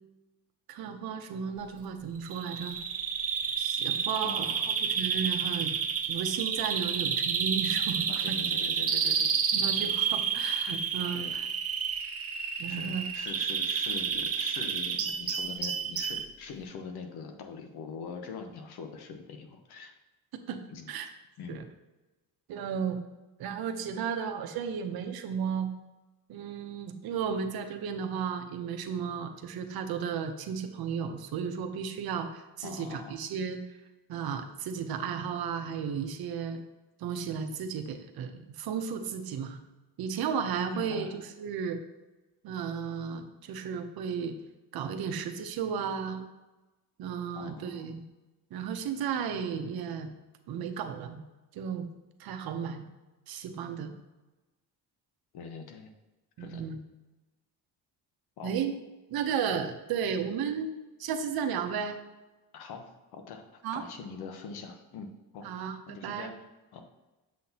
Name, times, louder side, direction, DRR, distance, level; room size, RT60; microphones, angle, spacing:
voice 1, 0.7-2.8 3.6-5.8 6.1-8.4 9.5-11.4 12.6-13.0 20.5-20.6 20.9-21.1 21.5-21.6 22.5-23.0 23.4-25.7 26.3-33.6 34.1-36.6 37.0-39.6 40.0-41.8 42.4-44.3 44.7-46.2 47.0-48.0 48.5-50.1 50.5-51.2 51.5-51.9 52.2-52.9 53.3-53.9 56.4-56.8 58.4-58.8 59.1-62.0 63.6-63.8 65.4-66.3, right 7 dB, 75° right, 6 dB, 0.9 m, -34 dB
Bird vocalization bird call bird song, 2.3-16.3, right 6 dB, 40° right, 0.7 m, -30 dB
voice 2, 4.2-4.7 8.1-9.4 9.8-9.9 11.1-11.4 12.4-19.9 20.7-20.9 21.4-21.6 32.6-33.2 40.7-41.2 47.3-47.8 55.3-55.9 56.4-56.6 58.4-58.6 62.5-63.4 63.7-65.1 65.3-65.5 65.9-66.3 66.7-66.8, left 5 dB, 85° left, 5 dB, 1.1 m, -43 dB
7.6 x 5.9 x 2.9 m, 1.1 s
cardioid pair, 125°, 37 cm